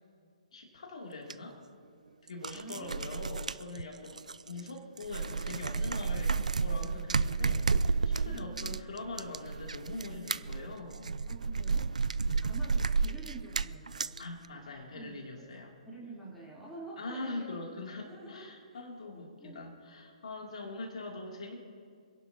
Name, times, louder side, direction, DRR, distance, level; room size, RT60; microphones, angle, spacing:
voice 1, 0.5-1.6 2.3-11.2 12.2-12.6 14.2-15.7 17.0-21.6, left 2 dB, 60° left, -1 dB, 2.9 m, -43 dB
sound 1, 1.3-1.4 2.3-4.7 5.0-14.2, right 4 dB, 80° right, 0.4 m, -31 dB
voice 2, 2.5-3.1 6.3-6.4 6.7-7.0 8.2-8.8 11.3-14.3 14.5-15.2 15.5-17.5 18.0-18.5 19.4-19.7 20.6-20.8, right 2 dB, 5° left, -7 dB, 3.7 m, -48 dB
27.5 x 11.0 x 2.9 m, 2.3 s
figure-of-eight pair, 135°, 4 cm